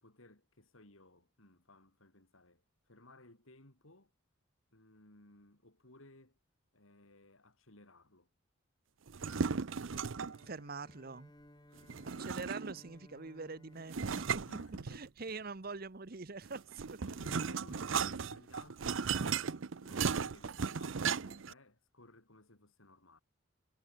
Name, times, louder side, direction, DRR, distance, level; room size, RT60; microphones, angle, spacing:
voice 1, 0.0-4.1 4.7-6.4 6.7-8.3 14.5-15.1 17.0-23.2, left 2 dB, 80° left, 4.4 m, -60 dB
sound 1, 9.1-10.4 11.9-12.9 13.9-15.3 16.4-21.5, right 6 dB, 70° right, 0.6 m, -36 dB
Bowed string instrument, 10.0-15.3, left 1 dB, 20° left, 2.4 m, -61 dB
voice 2, 10.5-11.3 12.0-14.5 14.9-17.3, right 4 dB, 45° right, 1.0 m, -44 dB
head